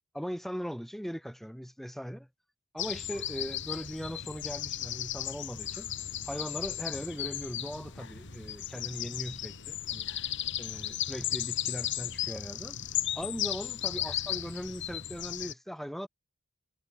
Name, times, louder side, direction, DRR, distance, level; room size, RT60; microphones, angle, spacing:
voice 1, 0.1-2.3 2.7-5.9 6.3-10.1 10.6-12.8 13.2-16.1, equal, ahead, 3.7 m, -39 dB
sound 1, 2.8-15.5, left 11 dB, 55° left, 2.0 m, -35 dB
head